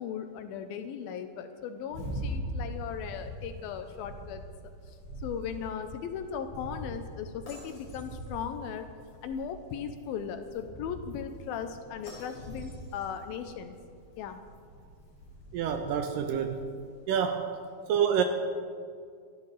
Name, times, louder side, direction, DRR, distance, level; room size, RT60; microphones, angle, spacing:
voice 1, 0.0-4.5 4.9-8.8 9.2-13.8 14.2-14.4, left 7 dB, 80° left, 8 dB, 2.4 m, -37 dB
sound 1, 1.8-17.0, equal, 40° left, 6.0 m, -42 dB
voice 2, 15.5-16.7 17.1-17.5 17.9-18.2, right 8 dB, 75° right, 6 dB, 2.1 m, -27 dB
25.5 x 12.0 x 3.3 m, 2.2 s
omnidirectional pair, 4.5 m